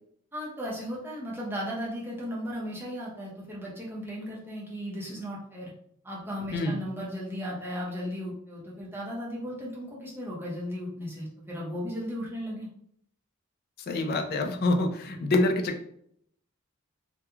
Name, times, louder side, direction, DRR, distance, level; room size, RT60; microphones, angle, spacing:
voice 1, 0.3-5.7 6.0-12.7, equal, 10° right, -6 dB, 0.7 m, -36 dB
voice 2, 13.9-15.8, left 2 dB, 45° left, 4 dB, 0.4 m, -26 dB
2.3 x 2.2 x 3.0 m, 0.69 s
head